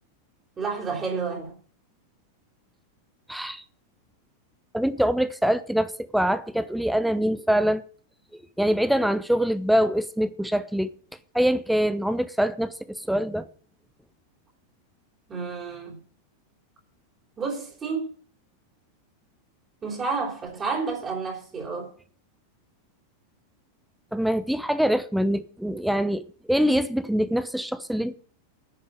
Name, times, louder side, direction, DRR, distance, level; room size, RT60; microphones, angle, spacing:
voice 1, 0.6-1.6 15.3-16.0 17.4-18.1 19.8-21.9, right 4 dB, 25° right, 3.7 m, -30 dB
voice 2, 3.3-3.6 4.7-7.8 8.6-10.9 11.3-12.7 13.1-13.4 24.1-26.2 26.5-28.1, equal, ahead, 0.9 m, -24 dB
10.5 x 6.7 x 8.7 m
figure-of-eight pair, 90°, 0 cm